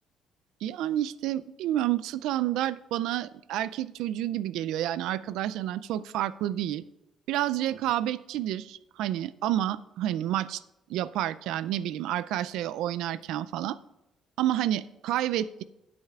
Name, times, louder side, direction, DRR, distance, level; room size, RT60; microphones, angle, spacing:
voice 1, 0.6-6.8 7.3-10.6 10.9-13.8 14.4-15.6, right 12 dB, 80° right, 16 dB, 0.4 m, -29 dB
17.0 x 8.6 x 2.4 m, 0.89 s
supercardioid pair, 55°, 0 cm